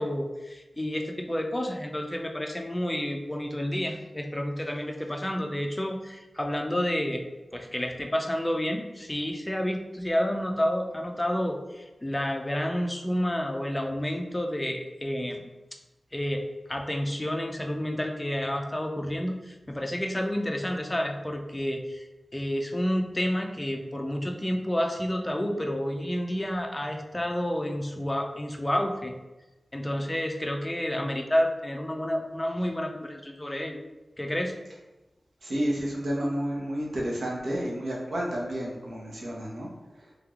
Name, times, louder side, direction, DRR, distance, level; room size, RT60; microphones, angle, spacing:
voice 1, 0.0-7.2 7.5-15.5 16.1-16.4 16.7-22.1 22.3-29.1 29.7-33.8 34.2-34.6, equal, 15° left, 3 dB, 0.5 m, -30 dB
voice 2, 35.4-39.7 40.0-40.1, equal, 80° right, -4 dB, 1.1 m, -31 dB
3.4 x 3.2 x 3.6 m, 1.1 s
wide cardioid pair, 90°, 0 cm